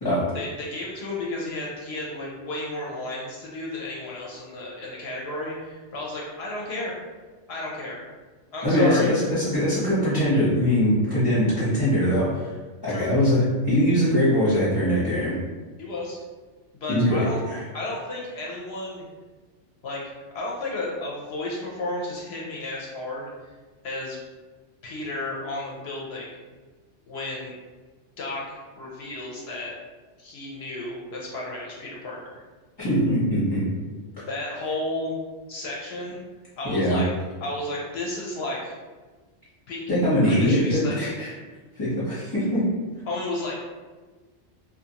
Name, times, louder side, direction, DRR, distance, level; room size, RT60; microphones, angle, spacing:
voice 1, 0.3-6.9 7.5-8.0 8.5-9.1 12.9-13.1 15.8-16.2 16.7-17.4 17.7-19.1 19.8-20.0 20.3-23.3 23.8-24.2 24.8-26.4 27.1-27.5 28.2-29.7 30.2-32.4 34.3-35.2 35.5-36.2 36.6-37.1 37.4-38.8 39.7-39.8 40.2-41.1 43.1-43.5, left 2 dB, 65° left, -3 dB, 0.7 m, -33 dB
voice 2, 8.6-12.2 12.8-15.3 16.9-17.6 32.8-33.6 36.6-37.0 39.9-41.3 41.8-42.6, equal, 25° left, -11 dB, 0.6 m, -22 dB
2.5 x 2.2 x 2.8 m, 1.3 s
omnidirectional pair, 1.3 m